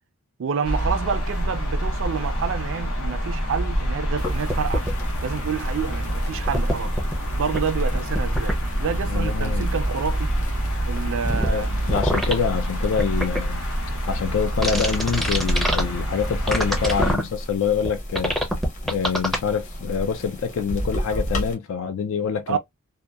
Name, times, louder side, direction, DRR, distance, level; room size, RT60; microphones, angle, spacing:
voice 1, 0.4-4.8 5.2-7.0 7.4-10.4 10.9-11.7 22.5-22.6, right 6 dB, 60° right, 0.4 m, -28 dB
sound 1, 0.6-17.1, equal, 80° left, 0.9 m, -26 dB
sound 2, 4.2-21.5, equal, 35° left, 0.9 m, -34 dB
sound 3, 4.5-4.9 6.4-7.1 7.5-7.6 7.9-8.5 11.2-11.5 11.9-12.3 13.0-13.4 14.6-15.8 16.5-17.2 17.8-17.9 18.1-19.4, equal, ahead, 0.5 m, -24 dB
voice 2, 9.0-9.7 11.5-13.6 14.1-18.3 18.8-22.6, left 6 dB, 60° left, 0.3 m, -26 dB
2.7 x 2.2 x 2.2 m
head